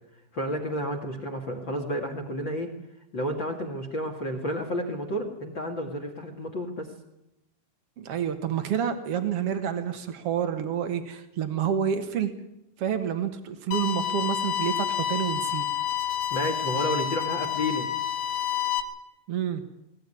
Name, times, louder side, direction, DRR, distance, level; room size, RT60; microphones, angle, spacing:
voice 1, 0.3-2.7 3.1-6.9 16.3-17.9, equal, 40° left, 5 dB, 1.7 m, -31 dB
voice 2, 8.0-12.3 12.8-15.7 19.3-19.6, right 8 dB, 80° right, 8 dB, 1.3 m, -28 dB
sound 1, 13.7-18.8, left 10 dB, 80° left, 4.1 m, -29 dB
19.5 x 18.0 x 9.8 m, 0.88 s
omnidirectional pair, 5.2 m